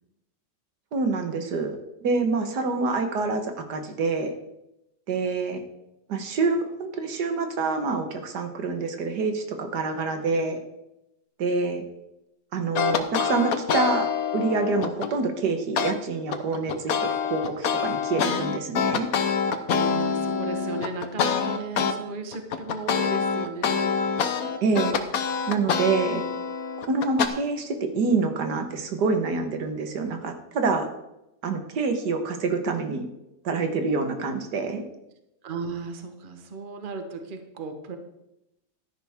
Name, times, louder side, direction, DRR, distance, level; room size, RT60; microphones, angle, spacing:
voice 1, 0.9-1.8 2.0-4.3 5.1-5.6 6.1-10.6 11.4-11.8 12.5-19.1 24.6-25.0 25.5-26.2 26.9-30.9 31.4-33.1 33.4-34.8, right 4 dB, 85° right, 6 dB, 1.8 m, -26 dB
sound 1, 12.8-15.1 15.8-15.9 16.3-22.0 22.3-27.3, left 6 dB, 65° left, 1.3 m, -26 dB
voice 2, 19.7-24.0 35.4-38.0, right 4 dB, 35° right, 6 dB, 1.2 m, -35 dB
12.5 x 10.5 x 3.6 m, 0.88 s
omnidirectional pair, 1.7 m